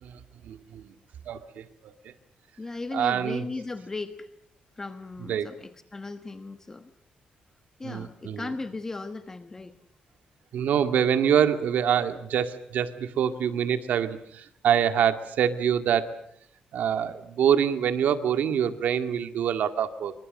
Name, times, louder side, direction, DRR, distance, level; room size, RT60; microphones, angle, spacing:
voice 1, 0.0-0.9 1.3-2.1 2.9-3.4 5.3-5.5 7.8-8.5 10.5-16.1 16.7-20.1, right 8 dB, 80° right, 8 dB, 2.0 m, -25 dB
voice 2, 2.6-4.3 4.8-6.9 7.8-9.7, left 3 dB, 20° left, 8 dB, 1.2 m, -37 dB
26.5 x 24.5 x 7.7 m, 0.70 s
wide cardioid pair, 150°, 3 cm